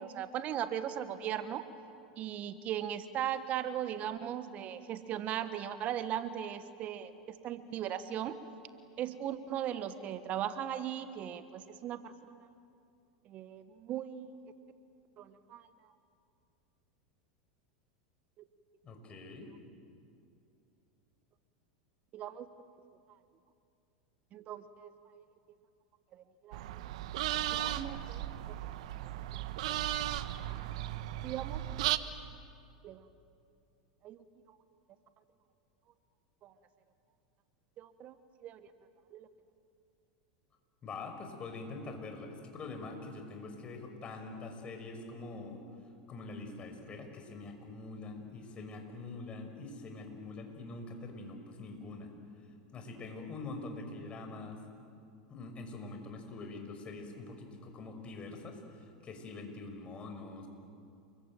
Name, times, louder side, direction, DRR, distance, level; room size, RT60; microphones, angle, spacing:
voice 1, 0.0-1.7 2.2-8.4 9.0-12.5 13.2-14.3 15.2-15.7 18.4-18.5 22.1-22.5 24.3-25.2 26.1-26.6 27.5-28.6 31.2-31.9 32.8-33.1 34.0-34.2 36.4-36.5 37.8-38.2 38.4-38.7 39.1-39.3, right 10 dB, 40° right, 12 dB, 1.2 m, -38 dB
voice 2, 18.8-19.5 40.8-45.6 46.1-52.1 52.7-54.6 55.3-60.5, left 3 dB, 30° left, 5 dB, 5.9 m, -44 dB
sound 1, 26.5-32.0, right 13 dB, 70° right, 1.1 m, -36 dB
29.5 x 22.0 x 9.1 m, 2.5 s
hypercardioid pair, 95°, 4 cm